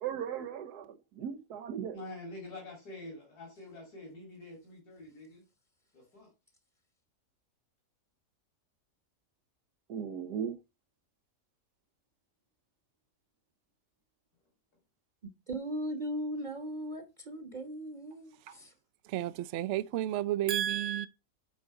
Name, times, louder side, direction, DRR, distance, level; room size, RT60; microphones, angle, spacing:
voice 1, 0.0-2.0 9.9-10.6 18.5-18.6 20.5-21.1, right 8 dB, 85° right, 1.4 m, -36 dB
voice 2, 1.9-5.4 5.9-6.3 19.2-19.3, left 2 dB, 75° left, 2.8 m, -46 dB
voice 3, 15.2-18.7, equal, 35° right, 1.0 m, -38 dB
voice 4, 19.1-21.1, right 14 dB, 70° right, 0.7 m, -32 dB
9.2 x 3.8 x 5.3 m
omnidirectional pair, 1.7 m